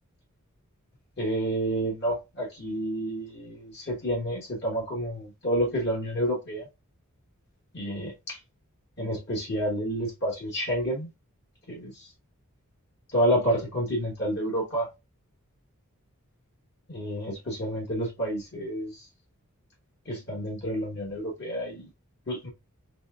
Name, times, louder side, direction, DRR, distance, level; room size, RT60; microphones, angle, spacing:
voice 1, 1.2-6.7 7.7-8.4 9.0-11.1 11.7-12.1 13.1-14.9 16.9-19.1 20.0-21.9 22.3-22.5, equal, 50° left, 1.2 m, -29 dB
4.2 x 3.2 x 2.3 m
head